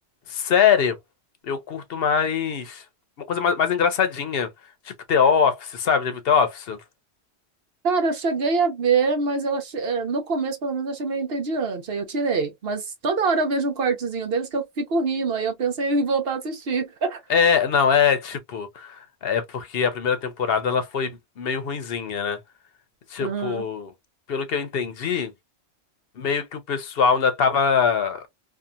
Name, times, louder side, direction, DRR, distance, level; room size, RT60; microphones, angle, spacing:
voice 1, 0.3-1.0 1.4-2.8 3.2-4.5 4.9-6.8 17.3-22.4 23.1-23.9 24.3-25.3 26.2-28.2, left 6 dB, 65° left, 0.8 m, -23 dB
voice 2, 7.8-17.2 23.2-23.7, right 4 dB, 65° right, 1.0 m, -25 dB
2.7 x 2.4 x 2.3 m
omnidirectional pair, 1.1 m